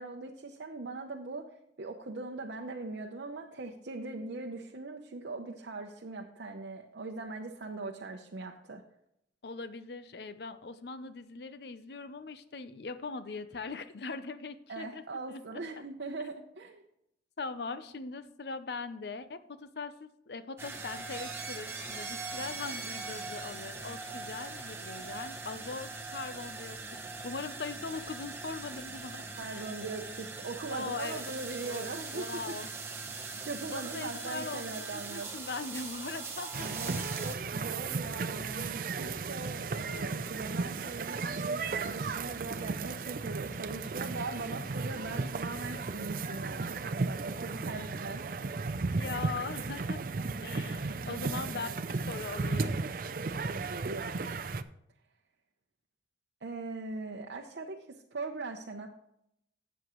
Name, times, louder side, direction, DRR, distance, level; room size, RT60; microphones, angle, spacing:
voice 1, 0.0-1.5 1.8-8.8 14.7-16.8 29.4-32.5 33.4-35.3 36.6-37.0 37.2-48.2 50.9-51.7 53.2-54.2 56.4-58.9, right 3 dB, 80° right, 1 dB, 0.7 m, -40 dB
voice 2, 9.4-15.0 15.3-15.4 17.4-26.8 27.2-29.3 29.5-29.6 30.7-31.3 31.6-32.7 33.7-37.1 37.6-37.7 49.0-50.0 50.4-52.8, left 4 dB, 70° left, 12 dB, 0.6 m, -41 dB
sound 1, 20.6-37.3, right 4 dB, 15° right, 1.0 m, -41 dB
sound 2, 36.5-54.6, right 4 dB, 50° right, 0.4 m, -35 dB
12.0 x 8.0 x 3.1 m, 0.77 s
head